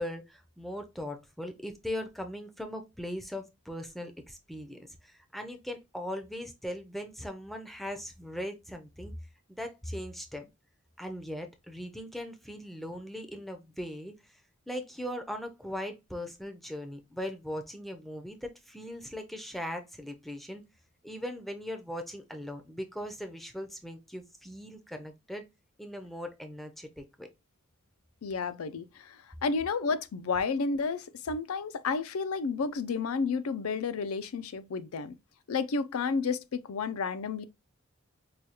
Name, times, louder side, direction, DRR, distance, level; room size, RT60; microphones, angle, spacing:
voice 1, 0.0-9.1 9.5-10.5 11.0-14.4 14.7-20.6 21.0-25.4 25.8-27.3, left 1 dB, ahead, 0.5 m, -39 dB
voice 2, 28.2-35.1 35.5-37.4, left 4 dB, 85° left, 0.4 m, -31 dB
4.8 x 2.3 x 2.8 m
head